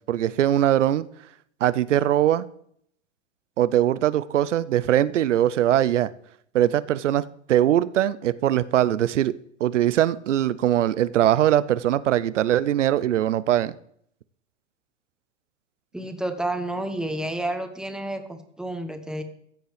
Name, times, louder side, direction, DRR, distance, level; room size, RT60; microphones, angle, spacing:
voice 1, 0.1-1.0 1.6-2.5 3.6-6.1 6.5-7.2 7.5-9.3 9.6-13.8, right 12 dB, 85° right, 0.5 m, -21 dB
voice 2, 15.9-19.2, right 1 dB, ahead, 1.2 m, -30 dB
15.0 x 7.9 x 3.3 m
hypercardioid pair, 95°, 36 cm